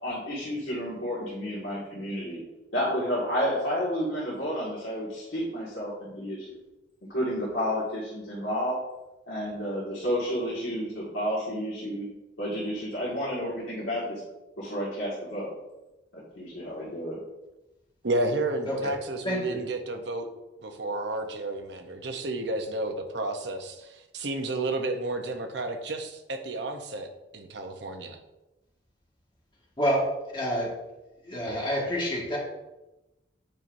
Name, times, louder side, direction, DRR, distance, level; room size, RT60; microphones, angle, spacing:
voice 1, 0.0-2.4 2.7-6.5 7.1-8.8 9.3-12.1 12.4-14.2 14.6-15.5 16.1-17.2, equal, 75° left, -8 dB, 1.9 m, -31 dB
voice 2, 18.0-20.3 20.6-27.1 27.3-28.2, right 2 dB, 60° right, 5 dB, 0.8 m, -31 dB
voice 3, 19.2-19.6 29.8-30.1 30.3-30.7 31.2-32.4, equal, 25° left, -4 dB, 1.8 m, -28 dB
8.8 x 5.4 x 2.6 m, 1.0 s
head